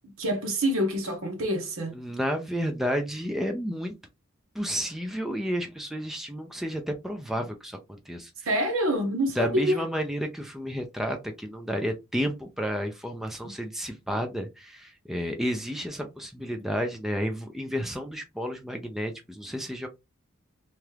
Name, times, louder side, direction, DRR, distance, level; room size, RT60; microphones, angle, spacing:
voice 1, 0.2-1.9 8.4-9.8, equal, 70° right, 1.0 m, -26 dB
voice 2, 1.9-4.0 4.5-8.3 9.4-19.9, equal, ahead, 0.4 m, -31 dB
2.9 x 2.3 x 3.2 m
head